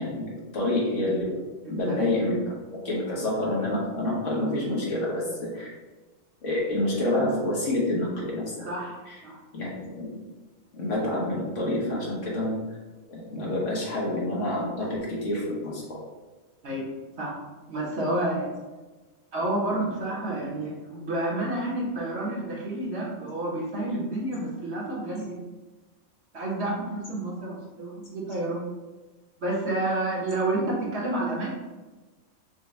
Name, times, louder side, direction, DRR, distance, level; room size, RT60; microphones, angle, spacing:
voice 1, 0.0-1.4 1.7-5.7 6.4-9.2 9.5-10.2 10.7-12.5 13.1-16.0, left 1 dB, 65° left, -4 dB, 1.4 m, -28 dB
voice 2, 8.7-9.4 14.8-14.9 16.6-16.9 17.2-17.3 17.7-18.5 19.3-25.4 26.3-28.7 29.4-31.5, right 1 dB, 55° right, -4 dB, 1.2 m, -29 dB
5.8 x 2.2 x 3.2 m, 1.2 s
omnidirectional pair, 1.4 m